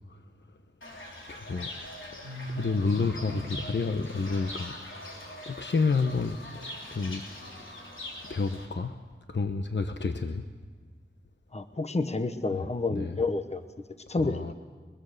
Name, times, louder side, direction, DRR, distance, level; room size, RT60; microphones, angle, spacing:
Fowl / Bird, 0.8-8.7, left 1 dB, 90° left, 3.8 m, -40 dB
voice 1, 1.3-1.7 2.1-4.7 5.5-7.2 8.3-9.0 9.3-10.4 12.5-13.1 14.2-14.5, left 4 dB, 65° left, 7 dB, 1.0 m, -30 dB
voice 2, 11.5-13.7 14.1-14.5, left 3 dB, 35° left, 10 dB, 1.1 m, -29 dB
22.5 x 22.0 x 6.7 m, 1.5 s
wide cardioid pair, 70°, 20 cm